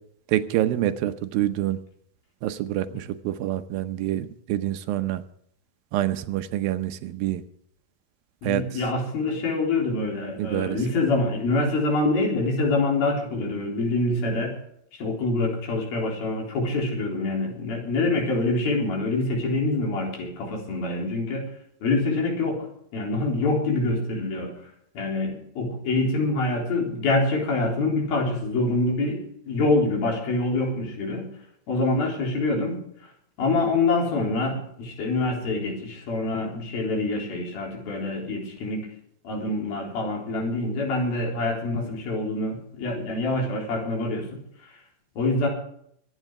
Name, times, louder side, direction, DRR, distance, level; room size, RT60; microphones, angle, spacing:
voice 1, 0.3-1.8 2.4-5.2 5.9-7.4 8.4-8.6 10.4-10.8, right 13 dB, 80° right, 10 dB, 2.6 m, -26 dB
voice 2, 8.4-14.6 15.0-21.4 21.8-22.7 22.9-24.5 25.0-31.3 31.7-32.8 33.4-38.9 39.2-44.4 45.2-45.5, left 2 dB, 80° left, 0 dB, 5.7 m, -25 dB
23.5 x 9.1 x 4.9 m, 0.69 s
omnidirectional pair, 4.2 m